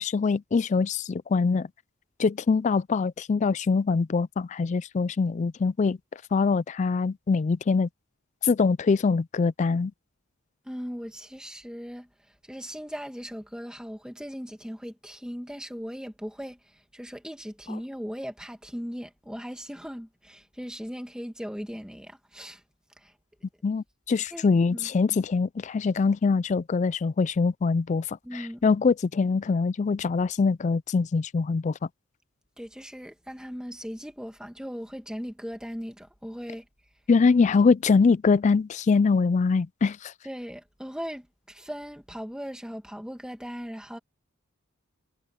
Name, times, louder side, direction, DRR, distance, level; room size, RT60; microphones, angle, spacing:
voice 1, 0.0-1.7 2.2-6.0 6.3-7.9 8.4-9.9 23.6-31.7 37.1-40.1, left 4 dB, 35° left, 0.3 m, -23 dB
voice 2, 10.7-12.1 12.5-16.6 16.9-22.6 23.0-23.1 24.3-24.9 28.2-28.6 32.6-36.6 40.2-44.0, equal, 5° right, 1.9 m, -38 dB
head